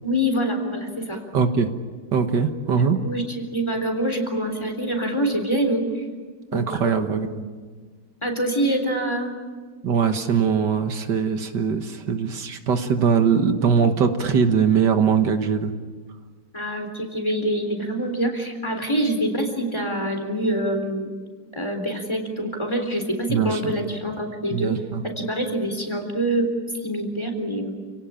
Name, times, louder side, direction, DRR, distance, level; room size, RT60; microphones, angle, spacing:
voice 1, 0.0-1.2 2.8-6.0 6.5-7.5 8.2-9.3 16.5-21.2 21.5-24.7 25.0-26.5 26.8-27.7, right 1 dB, 15° left, 4 dB, 3.8 m, -25 dB
voice 2, 1.3-1.7 2.1-3.0 6.5-7.3 9.8-15.7 23.3-23.6 24.5-25.0, right 6 dB, 75° right, 7 dB, 2.0 m, -21 dB
29.0 x 18.5 x 8.9 m, 1.5 s
omnidirectional pair, 1.9 m